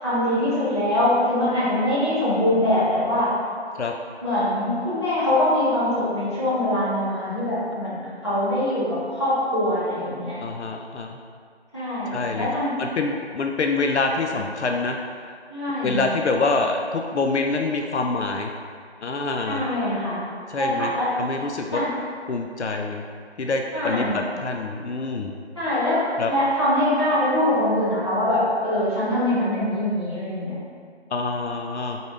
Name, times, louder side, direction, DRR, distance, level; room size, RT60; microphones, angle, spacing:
voice 1, 0.0-3.3 4.2-10.3 11.7-12.7 15.5-16.0 19.5-20.2 20.6-21.1 21.7-21.9 23.7-24.2 25.5-30.5, left 1 dB, 25° left, -12 dB, 1.1 m, -23 dB
voice 2, 10.3-11.2 12.1-12.5 12.8-15.0 15.8-18.5 19.0-19.6 20.5-20.9 21.2-21.8 22.3-23.0 23.4-25.3 26.2-26.3 31.1-32.0, left 3 dB, 85° left, 3 dB, 0.5 m, -26 dB
3.9 x 3.7 x 3.5 m, 2.1 s
figure-of-eight pair, 175°, 33 cm